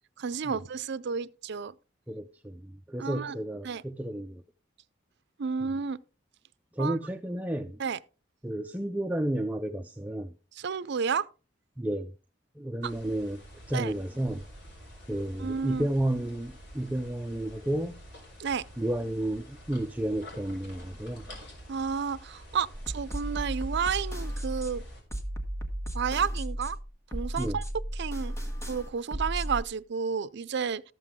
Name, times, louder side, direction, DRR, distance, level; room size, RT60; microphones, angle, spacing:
voice 1, 0.2-1.7 3.0-3.4 3.6-3.8 5.4-6.0 6.8-7.0 7.8-8.0 10.5-11.3 12.8-12.9 13.7-13.9 15.4-15.9 18.4-18.7 21.7-24.8 25.9-26.8 27.1-27.6 27.9-28.4 28.7-30.8, right 6 dB, 60° right, 0.5 m, -31 dB
voice 2, 2.1-4.4 5.6-5.7 6.7-7.8 8.4-10.3 11.8-12.1 12.6-13.4 13.7-14.4 15.1-17.9 18.8-21.2 27.4-27.6, right 1 dB, 10° right, 0.4 m, -32 dB
sound 1, 12.8-25.0, equal, 60° left, 4.1 m, -48 dB
sound 2, 22.7-29.6, right 1 dB, 15° left, 1.6 m, -34 dB
13.5 x 7.7 x 3.6 m
head